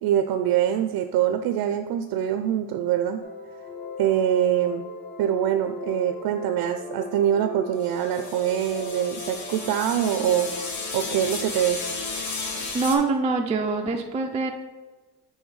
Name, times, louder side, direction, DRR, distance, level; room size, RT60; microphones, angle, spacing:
voice 1, 0.0-3.2 4.0-4.8 5.2-10.5 10.9-11.8, right 10 dB, 70° right, 8 dB, 0.5 m, -24 dB
sound 1, 3.2-12.7, left 3 dB, 30° left, 0.7 m, -39 dB
sound 2, 7.8-13.0, left 4 dB, 45° left, 1.2 m, -34 dB
voice 2, 12.7-14.5, right 3 dB, 20° right, 2 dB, 0.3 m, -24 dB
7.2 x 3.2 x 4.7 m, 1.3 s
cardioid pair, 130°, 38 cm